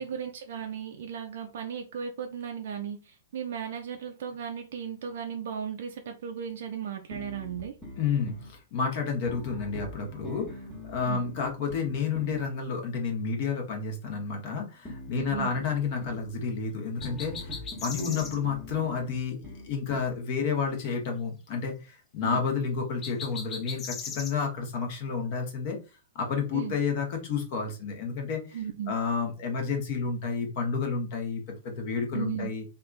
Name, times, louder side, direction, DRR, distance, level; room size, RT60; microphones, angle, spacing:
voice 1, 0.0-7.8 11.1-11.2 15.1-15.5 22.2-22.4 26.5-26.7 28.5-28.9 32.1-32.5, right 8 dB, 50° right, 4 dB, 0.4 m, -36 dB
sound 1, 7.1-8.5 9.3-12.5 14.9-16.3 17.0-20.2, left 1 dB, ahead, 1.3 m, -43 dB
voice 2, 8.0-10.5 10.9-25.8 26.1-28.6 28.9-32.6, left 5 dB, 40° left, 3 dB, 1.1 m, -30 dB
sound 2, 17.0-18.4 23.0-24.3, left 5 dB, 20° left, 0.5 m, -38 dB
3.4 x 2.5 x 2.5 m, 0.31 s
figure-of-eight pair, 105°, 0 cm